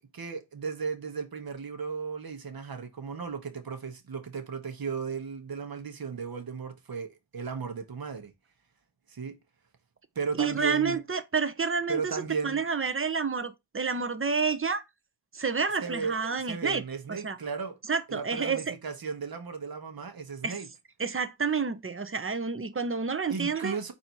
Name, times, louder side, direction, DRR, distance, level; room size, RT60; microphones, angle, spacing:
voice 1, 0.0-8.3 9.1-9.4 10.1-11.0 11.9-12.6 15.8-16.2 16.5-17.8 18.1-20.7 23.3-23.9, right 5 dB, 50° right, 1.1 m, -35 dB
voice 2, 10.4-14.8 15.3-16.8 17.2-17.4 17.9-18.7 20.4-20.5 21.0-23.8, right 5 dB, 30° right, 0.7 m, -29 dB
4.2 x 2.8 x 4.4 m
cardioid pair, 45°, 46 cm